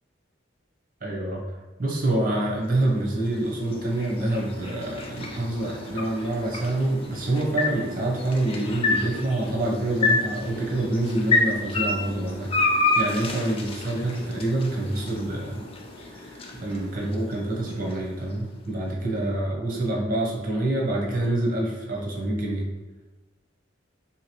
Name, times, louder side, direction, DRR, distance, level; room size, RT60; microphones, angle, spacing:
voice 1, 1.0-1.4 1.8-15.6 16.1-22.7, right 1 dB, 50° right, -3 dB, 0.8 m, -27 dB
sound 1, 2.5-18.7, left 3 dB, 30° left, 0.4 m, -30 dB
3.0 x 2.8 x 2.9 m, 1.2 s
head